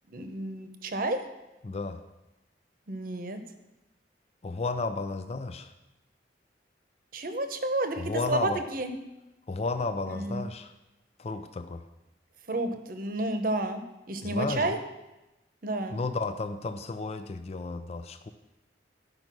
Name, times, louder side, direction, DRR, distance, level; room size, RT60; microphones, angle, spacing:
voice 1, 0.1-1.2 2.9-3.4 7.1-8.9 10.1-10.4 12.5-13.8 14.1-14.8 15.6-16.0, right 2 dB, 50° right, 7 dB, 0.9 m, -30 dB
voice 2, 1.6-2.0 4.4-5.7 8.0-8.6 9.5-10.7 11.2-11.8 14.2-14.8 15.9-18.3, left 3 dB, 35° left, 9 dB, 0.4 m, -33 dB
11.0 x 5.3 x 6.0 m, 0.98 s
head